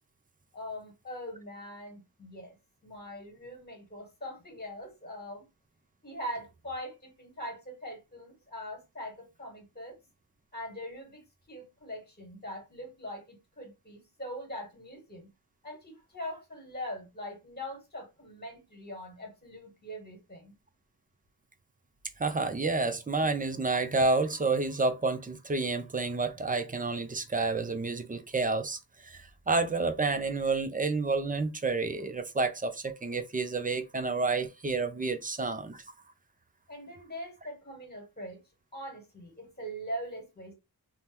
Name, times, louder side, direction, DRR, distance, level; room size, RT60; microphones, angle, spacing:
voice 1, 0.5-2.6 2.8-5.5 6.0-10.0 10.5-15.3 15.6-20.5 36.7-38.4 38.7-40.5, equal, 25° left, 1.3 m, -42 dB
voice 2, 22.2-35.8, right 3 dB, 25° right, 0.4 m, -29 dB
2.8 x 2.1 x 3.4 m
wide cardioid pair, 130°, 38 cm